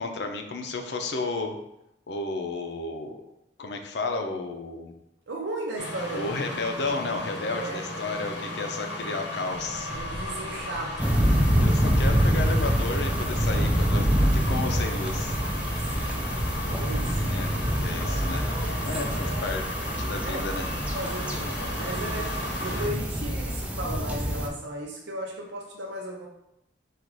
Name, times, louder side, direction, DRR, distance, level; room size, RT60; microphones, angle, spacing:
voice 1, 0.0-1.6 2.1-3.2 3.6-4.9 6.1-9.9 11.5-14.1 14.3-15.4 17.2-17.5 17.8-18.5 18.8-19.7 20.0-20.7, left 3 dB, 70° left, 4 dB, 0.6 m, -32 dB
voice 2, 5.3-6.4 7.4-7.8 9.9-11.1 15.8-17.3 19.0-19.7 20.2-20.5 20.9-26.3, right 1 dB, 90° right, -1 dB, 0.6 m, -36 dB
sound 1, 5.8-22.9, left 1 dB, 90° left, 1.1 m, -35 dB
sound 2, 9.5-18.8, right 1 dB, 45° right, 0.7 m, -42 dB
sound 3, 11.0-24.5, equal, 10° right, 0.4 m, -26 dB
4.0 x 2.5 x 4.7 m, 0.84 s
head